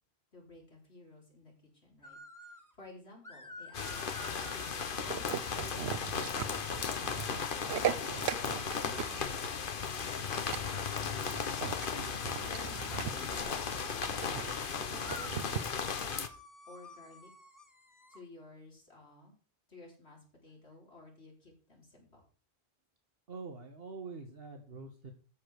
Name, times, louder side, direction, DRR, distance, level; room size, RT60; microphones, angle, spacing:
voice 1, 0.3-8.0 12.4-16.4 16.7-17.3 18.1-19.4 19.7-22.2, left 2 dB, 85° left, -1 dB, 4.2 m, -55 dB
sound 1, 2.0-2.7 3.2-6.0 6.8-9.4 10.6-14.1 15.0-18.2, left 1 dB, 15° left, 1.5 m, -52 dB
sound 2, 3.7-16.3, left 6 dB, 55° left, 1.1 m, -36 dB
sound 3, 5.0-15.6, right 9 dB, 80° right, 1.0 m, -39 dB
voice 2, 23.3-25.1, right 4 dB, 65° right, 3 dB, 1.7 m, -45 dB
13.0 x 5.1 x 6.4 m, 0.39 s
omnidirectional pair, 1.1 m